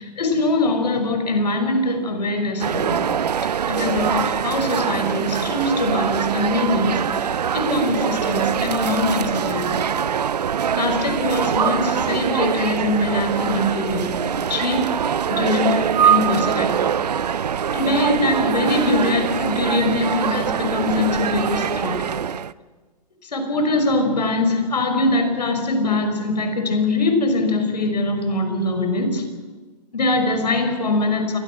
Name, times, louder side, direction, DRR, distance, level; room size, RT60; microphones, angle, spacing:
voice 1, 0.0-3.1 3.7-9.8 10.7-14.1 14.5-15.0 15.3-16.8 17.7-22.0 23.3-29.2 29.9-31.4, left 2 dB, 75° left, 6 dB, 5.6 m, -22 dB
sound 1, 2.6-22.5, right 8 dB, 75° right, 0.8 m, -23 dB
30.0 x 23.5 x 6.2 m, 1.3 s
figure-of-eight pair, 115°, 21 cm